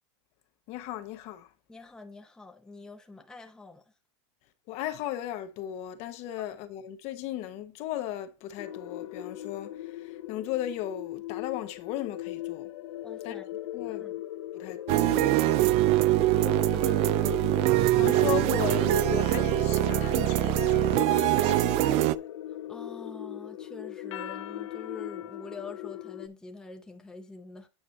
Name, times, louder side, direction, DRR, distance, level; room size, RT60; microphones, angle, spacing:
voice 1, 0.7-1.5 4.7-12.7 13.2-13.3 13.7-14.1 14.5-15.6 17.9-22.2, left 12 dB, 45° left, 1.0 m, -36 dB
voice 2, 1.7-3.8 13.0-14.2 16.4-17.4 22.7-27.7, left 3 dB, 5° left, 0.7 m, -45 dB
sound 1, 8.6-26.3, left 13 dB, 90° left, 0.5 m, -38 dB
sound 2, 14.9-22.2, right 18 dB, 40° right, 0.4 m, -23 dB
8.8 x 5.0 x 4.0 m
supercardioid pair, 135°, 15 cm